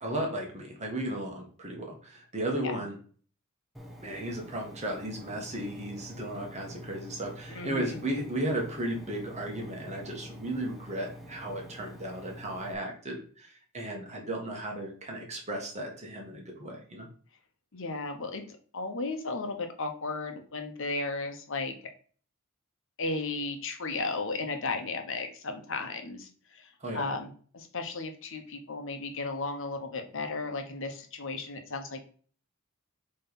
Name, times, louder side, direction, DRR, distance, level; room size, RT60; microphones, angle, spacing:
voice 1, 0.0-2.9 4.0-17.1 26.8-27.0, right 1 dB, 30° right, 1 dB, 1.5 m, -35 dB
Engine, 3.7-12.7, right 1 dB, ahead, 1.0 m, -48 dB
voice 2, 7.5-8.0 17.7-18.4 18.7-21.7 23.0-32.1, left 3 dB, 65° left, 6 dB, 1.1 m, -35 dB
7.8 x 3.3 x 4.1 m, 0.43 s
head